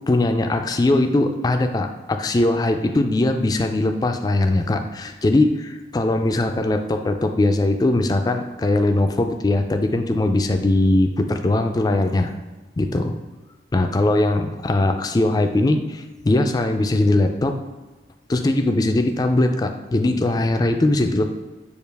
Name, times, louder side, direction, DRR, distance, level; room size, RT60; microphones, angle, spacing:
voice 1, 0.1-12.3 12.8-13.2 13.7-17.5 18.3-21.3, left 2 dB, 20° left, 5 dB, 0.3 m, -20 dB
6.6 x 2.4 x 3.4 m, 1.2 s
head